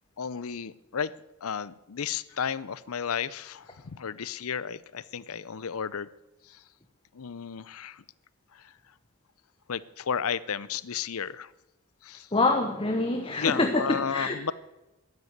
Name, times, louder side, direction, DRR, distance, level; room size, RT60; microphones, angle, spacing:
voice 1, 0.2-1.1 1.4-6.1 6.4-6.6 7.1-8.0 8.5-8.7 9.7-11.5 12.0-12.3 13.3-14.5, left 7 dB, 75° left, 19 dB, 0.6 m, -33 dB
voice 2, 12.3-14.5, left 2 dB, 25° left, 5 dB, 1.0 m, -26 dB
13.5 x 9.5 x 9.4 m, 1.0 s
head